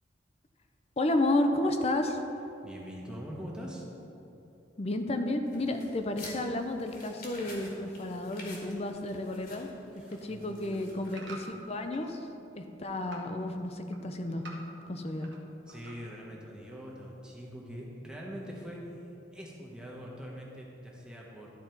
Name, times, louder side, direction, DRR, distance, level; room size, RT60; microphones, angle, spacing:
voice 1, 1.0-2.2 4.8-9.7 10.1-12.2 12.6-14.4 14.9-15.3, left 1 dB, 35° left, 6 dB, 0.5 m, -31 dB
voice 2, 2.6-3.8 9.9-11.2 15.7-18.9 19.3-21.5, equal, 5° right, -3 dB, 1.0 m, -43 dB
sound 1, 5.5-11.7, left 2 dB, 55° left, 1.6 m, -50 dB
sound 2, 10.6-12.2 12.6-13.3 13.7-15.4 15.7-16.2 16.7-16.8, right 3 dB, 75° right, 1.1 m, -49 dB
12.0 x 4.1 x 4.5 m, 2.9 s
head